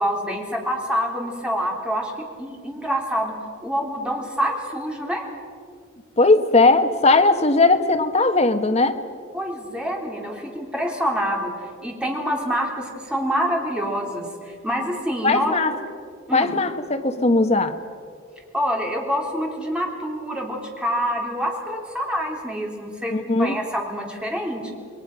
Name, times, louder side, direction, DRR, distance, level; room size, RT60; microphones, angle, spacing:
voice 1, 0.0-3.3 3.6-5.2 9.3-11.5 11.8-15.5 16.3-16.5 18.5-24.7, equal, 5° right, -1 dB, 3.7 m, -26 dB
voice 2, 6.2-9.0 15.2-15.7 16.3-17.8 23.1-23.5, left 3 dB, 35° left, 7 dB, 1.4 m, -18 dB
28.5 x 21.5 x 6.2 m, 2.2 s
head